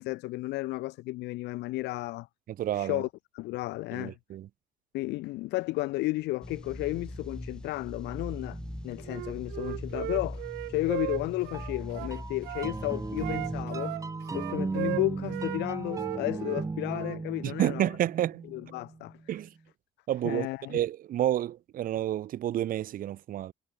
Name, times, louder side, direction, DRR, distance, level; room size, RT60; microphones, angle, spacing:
voice 1, 0.0-2.3 2.7-3.1 3.3-4.2 4.9-8.6 8.8-10.4 10.7-13.9 14.3-17.9 18.5-19.2 20.2-20.8, left 19 dB, 85° left, 2.2 m, -33 dB
voice 2, 2.6-3.0 3.9-4.5 17.4-18.4 19.3-19.5 20.1-23.5, right 12 dB, 55° right, 0.9 m, -30 dB
sound 1, 6.4-13.6, left 1 dB, 5° left, 3.3 m, -41 dB
sound 2, 8.5-9.7 11.5-19.2, right 3 dB, 20° right, 2.5 m, -37 dB
Wind instrument woodwind instrument, 9.0-12.7 13.2-15.6 15.9-17.2, right 21 dB, 90° right, 1.7 m, -37 dB
cardioid pair, 110°, 17 cm